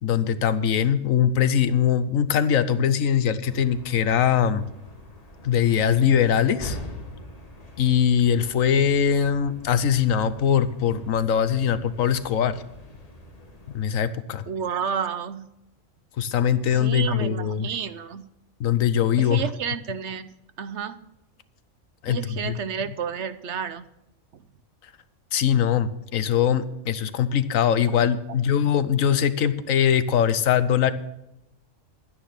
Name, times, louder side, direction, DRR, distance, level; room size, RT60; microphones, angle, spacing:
voice 1, 0.0-4.7 5.4-6.8 7.8-12.5 13.7-14.4 16.2-17.7 18.6-19.4 22.0-22.6 25.3-30.9, left 8 dB, 75° left, 1.2 m, -22 dB
sound 1, 3.4-13.9, left 1 dB, 30° left, 1.8 m, -43 dB
voice 2, 14.5-15.5 16.7-18.2 19.2-20.3 20.6-21.0 22.1-23.8 24.3-24.4, right 7 dB, 65° right, 1.0 m, -30 dB
11.5 x 10.0 x 5.9 m
omnidirectional pair, 1.4 m